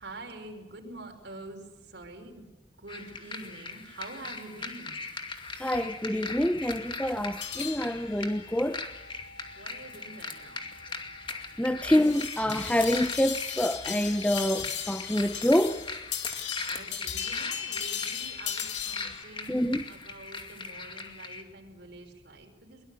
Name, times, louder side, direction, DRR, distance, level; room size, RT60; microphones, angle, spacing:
voice 1, 0.0-2.4 2.8-5.0 9.6-10.7 16.7-22.8, right 2 dB, 65° right, 3 dB, 5.2 m, -46 dB
sound 1, 2.9-21.4, left 4 dB, 30° left, 2.4 m, -40 dB
voice 2, 5.6-8.8 11.6-15.8 19.5-19.8, left 1 dB, 10° left, 9 dB, 0.7 m, -26 dB
sound 2, 7.4-19.2, left 8 dB, 70° left, 3.0 m, -38 dB
23.0 x 22.5 x 7.0 m, 1.1 s
head